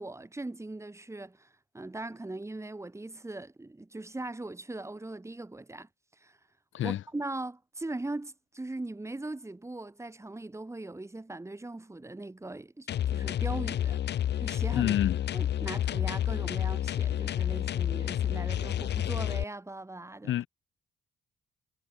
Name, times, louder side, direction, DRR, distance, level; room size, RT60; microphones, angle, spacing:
voice 1, 0.0-5.9 6.2-6.4 6.8-14.0 14.4-14.9 15.3-20.3, right 2 dB, 15° right, 4.0 m, -40 dB
sound 1, 12.9-19.4, left 10 dB, 60° left, 0.9 m, -30 dB
voice 2, 14.7-15.2 20.2-20.5, left 12 dB, 75° left, 5.2 m, -28 dB
cardioid pair, 90°, 20 cm